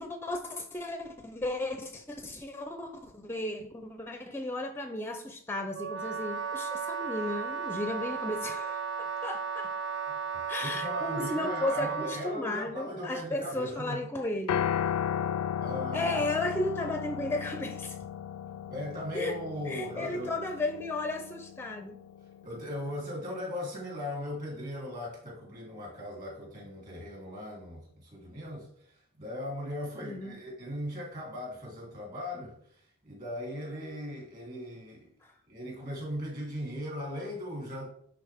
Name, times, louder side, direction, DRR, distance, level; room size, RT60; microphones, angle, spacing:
voice 1, 0.0-9.7 10.5-14.6 15.9-18.0 19.1-19.4 19.7-22.0 30.0-30.4 35.2-35.3, left 2 dB, 10° left, 0.5 m, -34 dB
Wind instrument woodwind instrument, 5.7-12.3, right 5 dB, 55° right, 0.6 m, -35 dB
voice 2, 10.1-14.0 15.6-16.3 18.7-20.3 22.4-35.1 35.5-37.9, left 1 dB, 40° right, 3.0 m, -38 dB
Piano, 14.5-22.7, left 9 dB, 70° left, 0.3 m, -35 dB
10.0 x 3.8 x 3.4 m
head